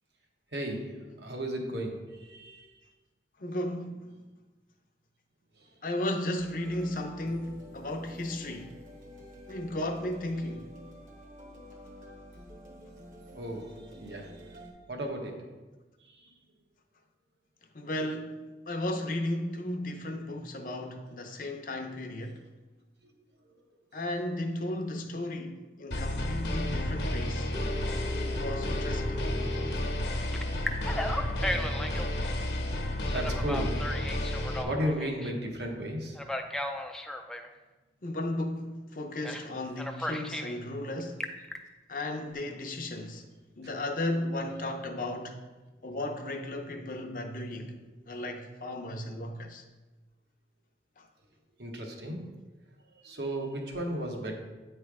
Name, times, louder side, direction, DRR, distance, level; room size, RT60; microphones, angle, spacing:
voice 1, 0.5-2.7 5.6-5.7 13.3-14.6 14.9-15.7 16.0-16.3 33.1-34.2 34.6-36.2 51.6-52.3 52.9-54.3, right 1 dB, 75° right, 1.1 m, -35 dB
voice 2, 3.4-4.3 5.8-8.8 9.5-10.7 17.7-18.4 18.7-22.4 23.9-27.5 28.1-29.3 38.0-41.3 41.9-43.3 43.6-45.5 45.8-47.8 48.1-49.6 51.0-51.1, left 1 dB, 50° left, 0.6 m, -35 dB
sound 1, 6.4-14.7, equal, 45° right, 1.0 m, -49 dB
sound 2, 25.9-34.6, left 1 dB, 70° left, 1.0 m, -31 dB
Telephone, 27.5-29.8 30.3-32.1 33.1-35.3 36.1-37.5 39.2-39.5 39.8-40.6 41.0-41.6, left 1 dB, 5° left, 0.3 m, -36 dB
8.8 x 3.3 x 4.7 m
head